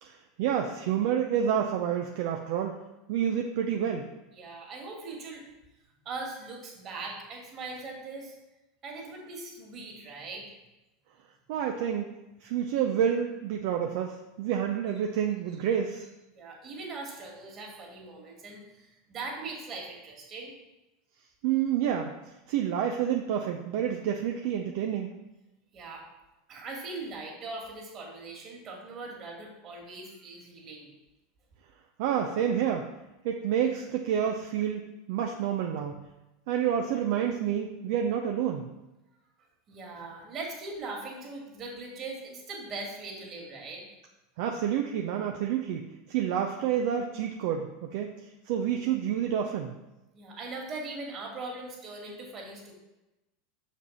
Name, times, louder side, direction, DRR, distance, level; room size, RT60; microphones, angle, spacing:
voice 1, 0.0-2.8 3.1-4.1 11.5-12.1 12.4-16.1 21.4-22.2 22.5-25.1 32.0-32.9 33.2-35.9 36.5-38.7 44.4-49.7, right 9 dB, 65° right, 3 dB, 0.6 m, -29 dB
voice 2, 4.3-5.5 6.0-8.3 8.8-10.4 16.3-20.5 25.7-26.1 26.5-30.9 39.7-43.9 50.1-52.7, right 3 dB, 40° right, -1 dB, 2.4 m, -40 dB
6.7 x 5.1 x 4.2 m, 0.99 s
hypercardioid pair, 90°, 0 cm